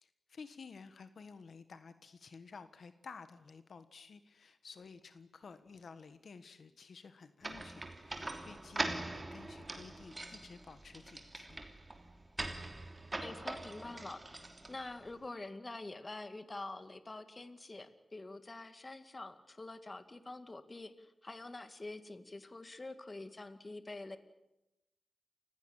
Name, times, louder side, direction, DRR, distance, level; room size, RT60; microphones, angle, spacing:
voice 1, 0.0-11.6, left 5 dB, 70° left, 11 dB, 1.4 m, -53 dB
sound 1, 7.4-15.1, right 2 dB, 25° right, 3.1 m, -43 dB
voice 2, 13.2-24.2, left 2 dB, 30° left, 10 dB, 2.1 m, -46 dB
29.5 x 16.5 x 8.8 m, 0.93 s
wide cardioid pair, 100°, 0 cm